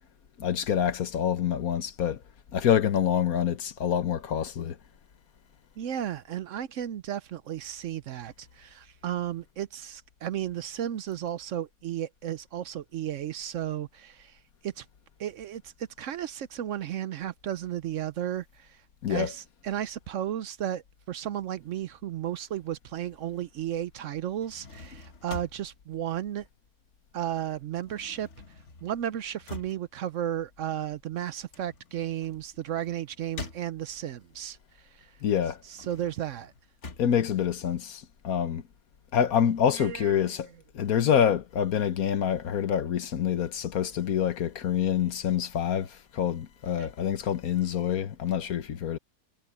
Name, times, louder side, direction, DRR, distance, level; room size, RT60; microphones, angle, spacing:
voice 1, 0.4-2.2 2.5-4.8 19.0-19.3 35.2-35.6 37.0-38.6 39.1-40.5 40.7-49.0, left 9 dB, 75° left, 1.5 m, -26 dB
voice 2, 5.8-14.9 15.2-18.8 19.1-26.5 27.1-28.3 28.8-35.2 35.7-36.5 39.7-40.4 46.8-46.9, right 11 dB, 65° right, 0.9 m, -34 dB
sound 1, 24.3-27.1 27.4-34.2 34.7-38.2, left 3 dB, 50° left, 1.8 m, -46 dB
omnidirectional pair, 1.5 m